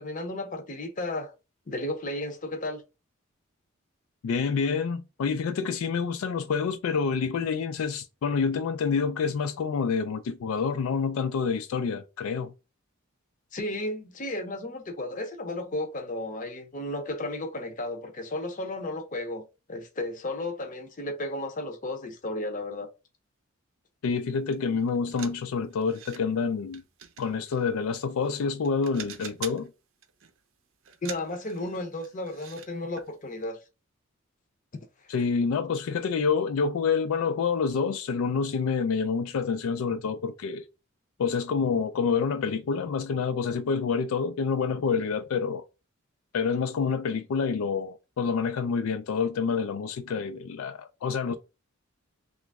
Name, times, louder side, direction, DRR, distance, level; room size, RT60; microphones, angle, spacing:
voice 1, 0.0-1.3 1.7-2.8 13.5-19.4 19.7-22.9 31.0-33.6, left 1 dB, 40° left, 0.6 m, -33 dB
voice 2, 4.2-12.5 24.0-26.8 27.2-29.7 35.1-40.6 41.2-45.6 46.3-51.4, left 5 dB, 85° left, 0.4 m, -27 dB
sound 1, 24.5-24.6 24.9-26.2 26.7-28.4 28.6-29.7 30.0-30.4 30.8-32.7 33.0-33.1 33.4-33.5, right 8 dB, 75° right, 0.5 m, -44 dB
3.0 x 2.4 x 3.4 m
head